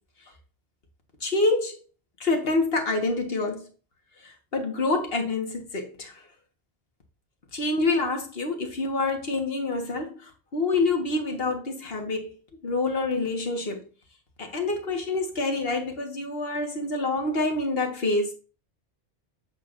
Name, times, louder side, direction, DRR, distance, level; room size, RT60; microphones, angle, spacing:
voice 1, 1.2-1.8 2.2-3.7 4.2-6.2 7.5-12.3 12.6-13.8 14.4-18.3, left 3 dB, 55° left, 1.8 m, -27 dB
7.8 x 6.7 x 2.6 m
omnidirectional pair, 1.2 m